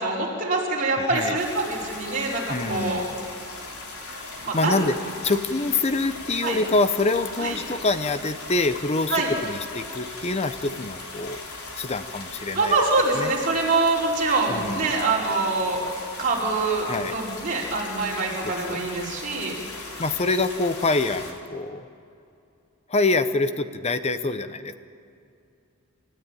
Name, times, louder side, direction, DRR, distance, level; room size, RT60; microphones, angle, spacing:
voice 1, 0.0-3.0 4.4-4.9 6.4-6.6 7.4-7.5 9.1-9.3 12.5-15.8 16.2-19.5, right 3 dB, 40° right, -4 dB, 5.0 m, -25 dB
voice 2, 1.0-1.4 2.5-3.2 4.5-5.0 5.2-11.4 11.8-12.7 13.1-13.3 14.5-14.9 16.8-17.2 18.4-18.8 20.0-21.9 22.9-24.7, left 3 dB, 30° left, 11 dB, 0.8 m, -25 dB
sound 1, 1.3-21.3, left 3 dB, 85° left, 3.8 m, -39 dB
29.0 x 13.5 x 9.1 m, 2.6 s
head